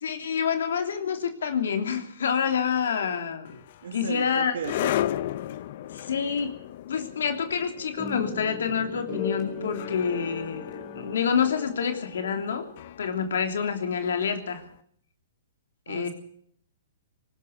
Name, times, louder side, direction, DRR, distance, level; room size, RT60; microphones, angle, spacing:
voice 1, 0.0-3.6 3.9-4.5 5.9-6.6 6.9-12.7 13.0-14.7 15.9-16.1, left 7 dB, 75° left, 6 dB, 3.1 m, -27 dB
sound 1, 3.5-14.6, left 12 dB, 50° left, 0.9 m, -36 dB
voice 2, 3.8-4.9 15.9-16.1, right 7 dB, 75° right, 2 dB, 2.7 m, -36 dB
sound 2, 8.0-13.1, left 4 dB, 30° left, 4.4 m, -38 dB
20.0 x 19.0 x 6.8 m, 0.65 s
hypercardioid pair, 150°, 0 cm